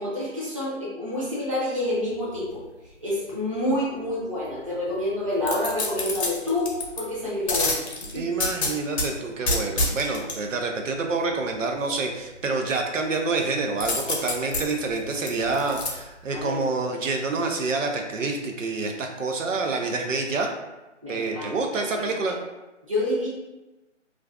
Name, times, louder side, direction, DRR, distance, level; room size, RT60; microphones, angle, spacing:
voice 1, 0.0-2.6 3.0-7.9 8.1-8.2 10.1-10.2 16.3-16.6 21.0-22.1 22.9-23.3, left 1 dB, 25° right, -8 dB, 0.5 m, -28 dB
sound 1, 5.4-7.0 7.5-9.1 9.5-10.4 13.8-15.9 16.4-16.5, left 2 dB, 60° left, 0.7 m, -27 dB
voice 2, 8.1-20.5 21.1-22.4, right 3 dB, 90° right, 2 dB, 0.5 m, -27 dB
2.4 x 2.2 x 2.3 m, 1.1 s
hypercardioid pair, 165°, 37 cm